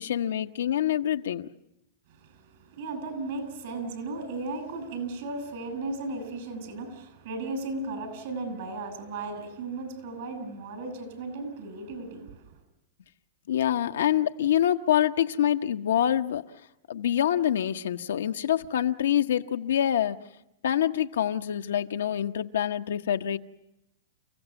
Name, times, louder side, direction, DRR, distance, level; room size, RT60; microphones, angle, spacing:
voice 1, 0.0-1.5 13.5-16.5 16.9-20.2 20.6-23.4, left 10 dB, 90° left, 0.9 m, -26 dB
voice 2, 2.2-12.4, right 3 dB, 65° right, 6.1 m, -35 dB
30.0 x 16.0 x 7.0 m
hypercardioid pair, 135°, 0 cm